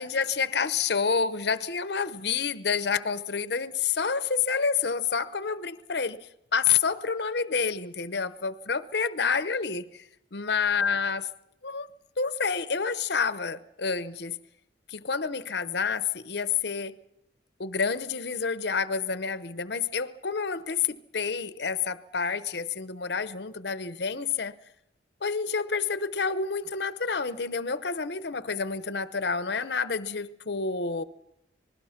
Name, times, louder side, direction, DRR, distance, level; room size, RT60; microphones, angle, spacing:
voice 1, 0.0-6.2 6.5-10.0 10.3-11.3 11.6-11.9 12.2-14.4 14.9-16.9 17.6-24.5 25.2-31.0, left 5 dB, 60° left, 0.8 m, -28 dB
26.5 x 20.5 x 5.8 m
head